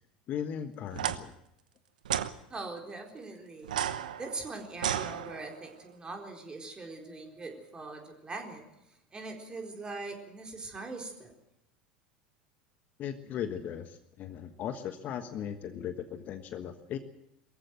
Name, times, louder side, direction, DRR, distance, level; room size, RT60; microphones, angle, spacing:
voice 1, 0.3-1.3 13.0-17.0, left 9 dB, 35° left, 9 dB, 1.4 m, -37 dB
sound 1, 0.9-1.2 2.0-2.3 3.6-5.7, right 10 dB, 65° right, 1.0 m, -33 dB
voice 2, 2.5-3.9 4.2-11.3, right 3 dB, 20° right, 3 dB, 4.2 m, -42 dB
23.0 x 15.0 x 7.7 m, 0.82 s
figure-of-eight pair, 75°, 5 cm